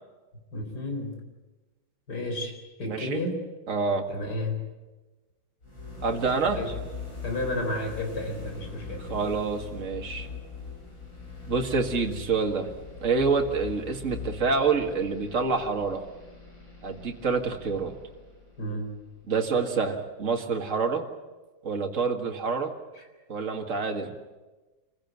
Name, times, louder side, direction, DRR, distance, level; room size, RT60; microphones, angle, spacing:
voice 1, 0.5-1.2 2.1-3.4 4.1-4.6 6.5-6.7 7.2-9.0 18.6-18.9 23.0-23.1, left 1 dB, 55° left, 4 dB, 4.6 m, -32 dB
voice 2, 2.9-3.2 3.7-4.0 6.0-6.6 9.1-10.3 11.5-12.7 13.0-16.0 16.8-17.9 19.3-21.0 21.6-22.7 23.3-24.1, right 4 dB, 40° right, 3 dB, 2.2 m, -27 dB
sound 1, 5.6-19.5, left 5 dB, 75° left, 8.3 m, -41 dB
26.0 x 15.5 x 9.3 m, 1.2 s
omnidirectional pair, 2.1 m